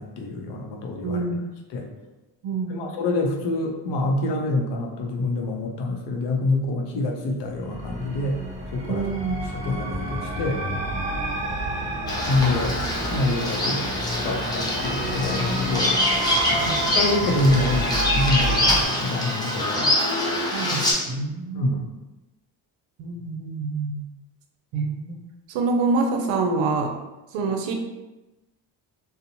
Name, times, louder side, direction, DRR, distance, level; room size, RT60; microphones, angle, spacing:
voice 1, 0.0-1.2 1.7-1.9 2.7-8.4 8.7-9.1 9.4-10.6 12.3-12.8 13.1-13.9 14.2-16.0 16.7-19.9 21.5-21.8, left 2 dB, 70° left, 2 dB, 0.6 m, -26 dB
voice 2, 1.0-1.4 2.4-2.9 8.9-9.4 16.5-16.9 20.5-21.7 23.0-24.0 24.7-25.2 25.5-26.9 27.3-27.7, right 3 dB, 85° right, 4 dB, 0.5 m, -26 dB
sound 1, 7.4-18.9, right 1 dB, 15° right, 0.9 m, -29 dB
Bird vocalization bird call bird song, 12.1-20.9, left 1 dB, 10° left, 0.5 m, -25 dB
2.7 x 2.0 x 2.6 m, 1.0 s
cardioid pair, 105°, 44 cm